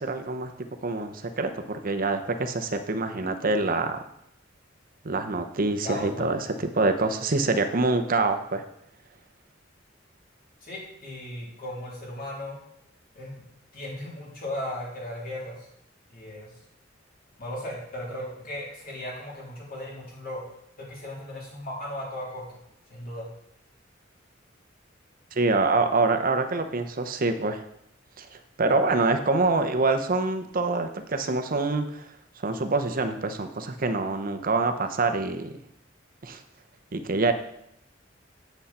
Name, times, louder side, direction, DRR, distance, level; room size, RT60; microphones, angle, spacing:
voice 1, 0.0-4.0 5.0-8.6 25.3-27.6 28.2-32.1 32.4-35.5 36.2-36.4 36.9-37.3, right 3 dB, 45° right, 7 dB, 0.8 m, -26 dB
voice 2, 5.8-6.3 10.6-12.6 13.2-13.4 13.7-15.6 16.1-16.5 17.4-20.4 20.8-22.4 22.9-23.3, left 1 dB, 50° left, -4 dB, 3.5 m, -36 dB
8.1 x 8.0 x 4.3 m, 0.77 s
head